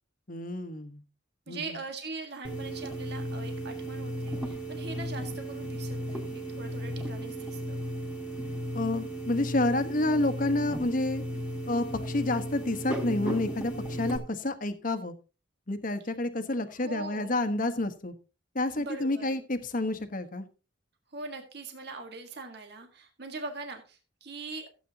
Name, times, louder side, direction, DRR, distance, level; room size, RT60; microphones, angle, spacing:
voice 1, 0.3-1.0 1.5-1.8 8.7-11.2 11.7-15.1 15.7-18.1 18.5-20.5, left 2 dB, 45° left, 9 dB, 1.2 m, -29 dB
voice 2, 1.5-7.8 16.8-17.3 18.8-19.4 21.1-24.7, right 3 dB, 55° right, 4 dB, 1.7 m, -41 dB
sound 1, 2.4-14.2, equal, 5° right, 3.2 m, -35 dB
16.0 x 8.4 x 2.9 m, 0.33 s
head